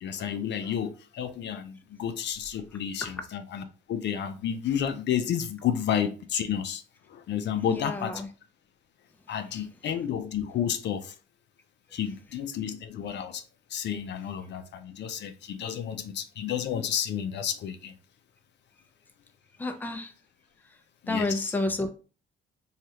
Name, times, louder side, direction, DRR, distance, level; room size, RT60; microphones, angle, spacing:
voice 1, 0.0-3.6 3.9-6.8 7.1-8.2 9.3-11.1 11.9-13.4 13.7-17.9 21.0-21.5, left 9 dB, 60° left, 0.4 m, -31 dB
voice 2, 7.7-8.3 9.3-9.6 11.9-12.0 19.6-20.1 20.6-21.9, left 2 dB, 10° left, 0.5 m, -32 dB
3.1 x 2.3 x 2.8 m
cardioid pair, 90°, 20 cm